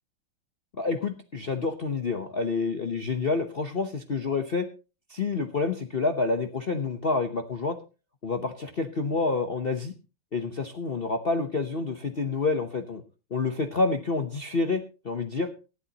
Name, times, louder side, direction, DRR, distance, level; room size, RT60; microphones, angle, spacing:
voice 1, 0.8-4.7 5.1-7.8 8.2-9.9 10.3-13.0 13.3-15.5, left 3 dB, 55° left, 7 dB, 0.6 m, -28 dB
18.5 x 12.0 x 2.9 m, 0.32 s
omnidirectional pair, 2.3 m